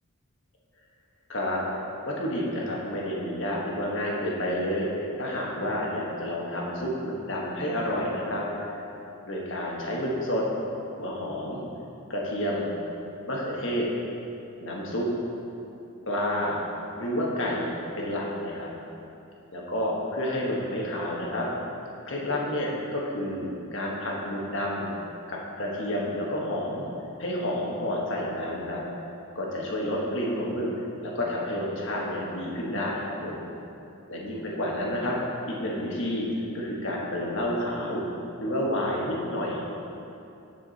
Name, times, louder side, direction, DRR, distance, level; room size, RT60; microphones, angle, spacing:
voice 1, 1.3-1.6 2.0-8.8 9.3-10.4 11.0-11.6 12.1-12.7 13.3-13.9 14.6-15.1 16.1-16.6 17.0-17.7 18.0-18.7 19.5-21.5 22.1-25.0 25.3-26.8 27.2-28.8 29.3-30.7 31.0-33.5 34.1-35.2 35.5-36.3 36.5-38.0 38.4-39.6, left 1 dB, 60° left, -3 dB, 1.3 m, -30 dB
8.2 x 6.6 x 4.1 m, 2.8 s
head